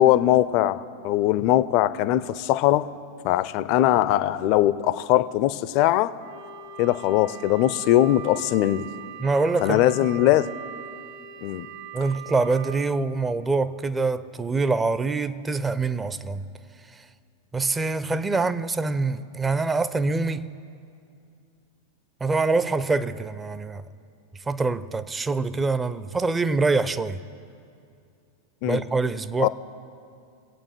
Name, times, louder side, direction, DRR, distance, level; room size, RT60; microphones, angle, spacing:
voice 1, 0.0-2.9 3.2-6.1 6.8-8.9 9.6-10.5 11.4-11.7 28.6-28.8 29.4-29.5, left 13 dB, 45° left, 0.4 m, -21 dB
Wind instrument woodwind instrument, 6.2-12.9, right 7 dB, 50° right, 1.1 m, -40 dB
voice 2, 9.2-10.3 11.9-16.4 16.9-17.0 17.5-20.5 22.2-23.8 24.5-27.2 28.7-29.5, right 3 dB, 15° right, 0.5 m, -25 dB
23.0 x 8.7 x 4.3 m
figure-of-eight pair, 90°, 0 cm